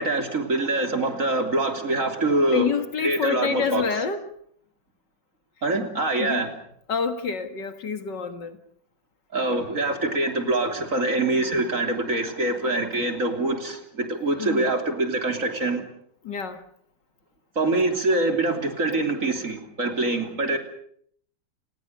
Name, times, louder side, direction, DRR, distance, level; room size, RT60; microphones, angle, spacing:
voice 1, 0.0-2.7 3.0-3.8 5.6-6.5 9.3-15.8 17.6-20.6, right 2 dB, 40° right, 3.6 m, -24 dB
voice 2, 2.5-4.2 5.8-5.9 6.2-6.5 6.9-8.6 14.4-14.7 16.2-16.6, left 6 dB, 65° left, 2.4 m, -28 dB
29.5 x 20.0 x 6.7 m
omnidirectional pair, 2.1 m